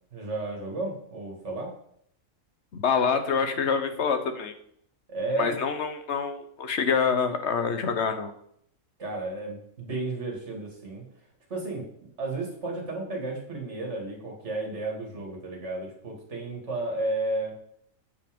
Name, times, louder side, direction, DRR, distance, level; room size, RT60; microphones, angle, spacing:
voice 1, 0.1-1.7 5.1-5.6 9.0-11.0 11.5-11.8 12.2-17.5, right 2 dB, 55° right, 0 dB, 2.5 m, -32 dB
voice 2, 2.7-4.5 5.4-8.3, left 6 dB, 55° left, 8 dB, 1.2 m, -26 dB
8.5 x 5.6 x 5.2 m, 0.68 s
omnidirectional pair, 1.4 m